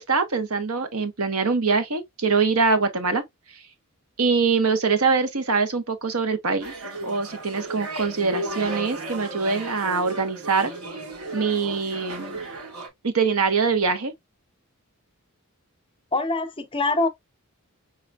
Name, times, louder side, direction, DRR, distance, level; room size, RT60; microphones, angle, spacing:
voice 1, 0.0-3.2 4.2-6.7 7.0-10.7 11.3-12.4 13.0-14.1, right 4 dB, 70° right, 1.1 m, -23 dB
sound 1, 6.6-12.9, right 1 dB, 90° right, 2.5 m, -35 dB
voice 2, 16.1-17.1, left 2 dB, 25° left, 0.7 m, -24 dB
5.4 x 4.0 x 2.3 m
head